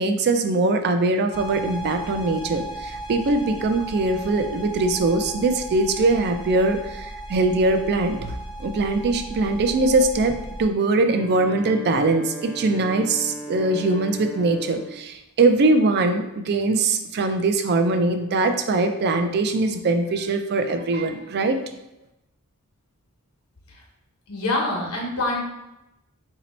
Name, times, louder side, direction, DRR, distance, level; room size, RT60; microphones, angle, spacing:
voice 1, 0.0-8.3 8.6-21.6, right 2 dB, 50° right, 7 dB, 0.4 m, -22 dB
sound 1, 1.3-10.7, right 1 dB, 20° left, 0.4 m, -36 dB
Wind instrument woodwind instrument, 11.0-15.1, right 2 dB, 5° right, 0.7 m, -37 dB
voice 2, 24.3-25.4, left 2 dB, 80° left, -1 dB, 1.0 m, -25 dB
2.9 x 2.8 x 4.1 m, 0.92 s
head